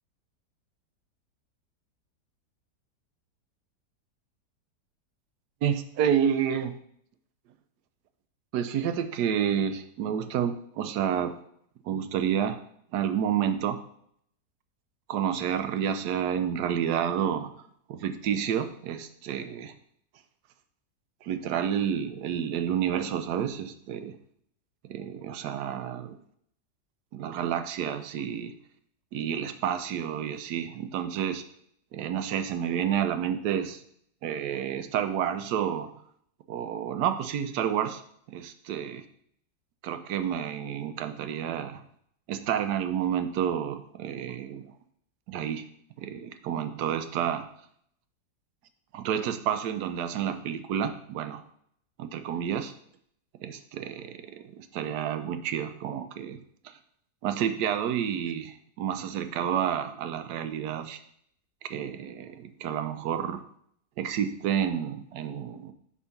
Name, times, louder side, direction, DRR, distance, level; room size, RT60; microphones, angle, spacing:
voice 1, 5.6-6.8 8.5-11.4 11.8-12.6 12.9-13.8 15.1-17.5 17.9-19.7 21.2-24.1 24.9-26.2 27.1-28.5 29.1-31.4 31.9-33.8 34.2-36.0 36.5-38.0 38.3-39.0 39.8-41.8 42.3-44.7 45.3-45.6 46.0-47.5 48.9-51.4 52.0-52.7 53.4-56.4 57.2-61.0 61.7-63.4 64.0-65.7, right 9 dB, 80° right, 9 dB, 1.1 m, -30 dB
7.0 x 3.7 x 5.8 m, 0.67 s
omnidirectional pair, 1.8 m